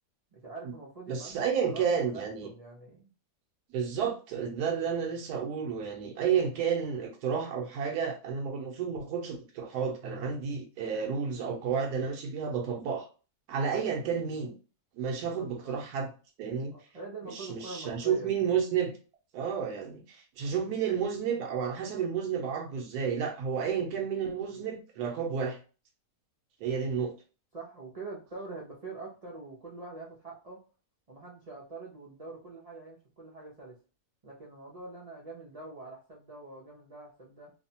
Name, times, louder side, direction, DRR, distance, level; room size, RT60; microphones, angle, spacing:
voice 1, 0.3-3.1 15.4-15.8 16.7-18.3 27.5-30.6 31.1-33.8 34.2-37.5, right 3 dB, 70° right, 0.3 m, -44 dB
voice 2, 1.1-2.5 3.7-13.1 13.5-14.5 15.0-16.1 16.4-16.7 17.3-18.9 19.3-25.6 26.6-27.1, right 7 dB, 90° right, 1.2 m, -31 dB
3.1 x 2.0 x 2.7 m
omnidirectional pair, 1.6 m